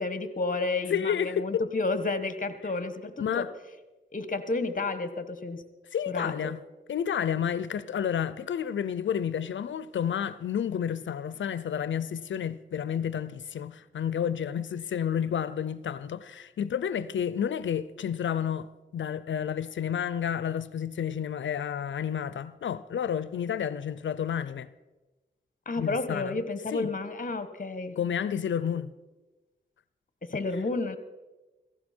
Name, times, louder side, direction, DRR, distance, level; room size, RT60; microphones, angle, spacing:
voice 1, 0.0-3.5 4.1-5.6 6.1-6.5 25.6-28.0 30.2-31.0, left 3 dB, 45° left, 1.3 m, -31 dB
voice 2, 0.9-1.6 3.2-3.5 5.9-6.6 6.9-24.7 25.8-26.4 26.7-26.9 28.0-28.9, left 8 dB, 80° left, 0.5 m, -30 dB
17.0 x 15.5 x 4.4 m
cardioid pair, 60°, 19 cm